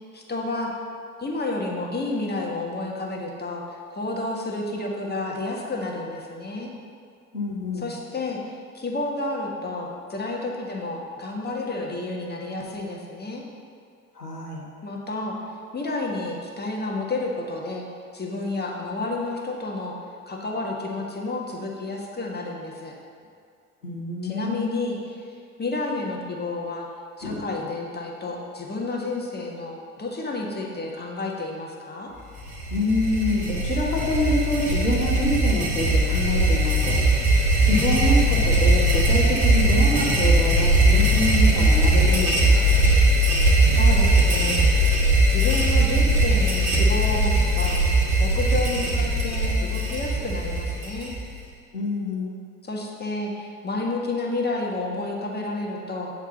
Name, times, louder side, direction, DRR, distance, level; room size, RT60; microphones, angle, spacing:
voice 1, 0.1-0.7 1.2-6.7 7.7-13.4 14.8-15.4 15.7-17.8 18.1-20.0 20.3-22.9 24.2-25.3 25.6-26.9 27.2-32.1 43.7-44.7 45.3-47.8 48.2-51.1 52.6-56.1, left 2 dB, 20° left, -1 dB, 1.5 m, -30 dB
voice 2, 7.3-7.9 14.1-14.6 23.8-24.8 27.2-27.4 32.7-37.0 37.6-42.6 51.7-52.3, left 2 dB, 90° left, -3 dB, 1.2 m, -26 dB
sound 1, 32.4-51.4, right 1 dB, 70° right, 2.6 m, -20 dB
9.0 x 4.8 x 7.1 m, 2.2 s
figure-of-eight pair, 60°, 45 cm